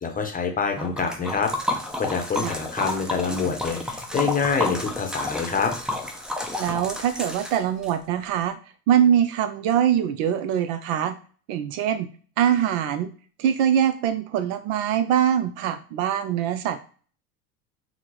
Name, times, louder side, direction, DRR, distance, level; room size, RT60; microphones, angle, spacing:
voice 1, 0.0-1.5 2.0-5.7, left 5 dB, 20° left, 4 dB, 0.8 m, -26 dB
Liquid, 0.8-7.9, left 1 dB, ahead, 0.5 m, -31 dB
voice 2, 6.6-8.6 8.9-11.1 11.5-12.1 12.4-13.1 13.4-16.8, right 9 dB, 55° right, 11 dB, 0.5 m, -23 dB
3.5 x 2.0 x 3.0 m, 0.41 s
hypercardioid pair, 75°, 43 cm